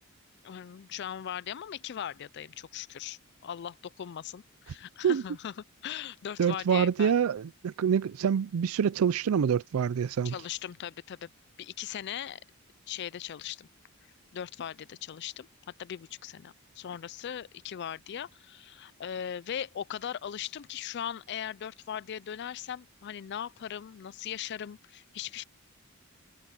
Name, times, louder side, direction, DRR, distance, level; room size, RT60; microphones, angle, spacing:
voice 1, 0.4-5.5 5.8-7.1 10.2-11.3 11.6-12.4 12.9-13.7 14.3-15.5 15.8-25.4, left 9 dB, 50° left, 0.3 m, -39 dB
voice 2, 6.4-10.3, right 7 dB, 75° right, 0.4 m, -26 dB
open air
head